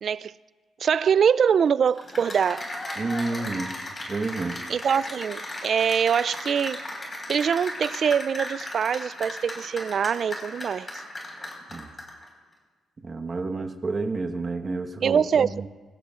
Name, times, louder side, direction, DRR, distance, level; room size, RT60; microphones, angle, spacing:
voice 1, 0.0-0.3 0.8-2.7 4.7-6.8 7.3-11.0 15.0-15.7, right 7 dB, 55° right, 0.3 m, -23 dB
Cheering / Applause, 1.9-12.2, left 1 dB, 25° left, 4.8 m, -36 dB
voice 2, 3.0-3.8 4.1-4.6 11.7-11.9 13.0-15.7, right 3 dB, 35° right, 1.3 m, -30 dB
23.5 x 16.0 x 2.5 m
cardioid pair, 90°, 0 cm